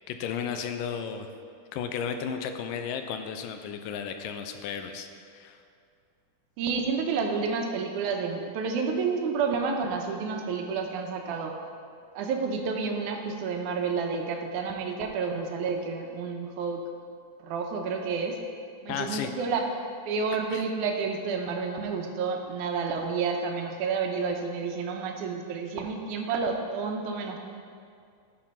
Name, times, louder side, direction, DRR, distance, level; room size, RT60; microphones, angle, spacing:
voice 1, 0.1-1.3 1.7-5.1 5.3-5.6 18.9-19.3 20.5-20.6, left 7 dB, 85° left, 7 dB, 2.2 m, -33 dB
voice 2, 6.6-11.5 12.2-16.8 17.4-18.4 18.8-19.7 20.1-27.4, right 5 dB, 70° right, 3 dB, 2.2 m, -30 dB
14.0 x 5.0 x 5.5 m, 2.3 s
omnidirectional pair, 4.0 m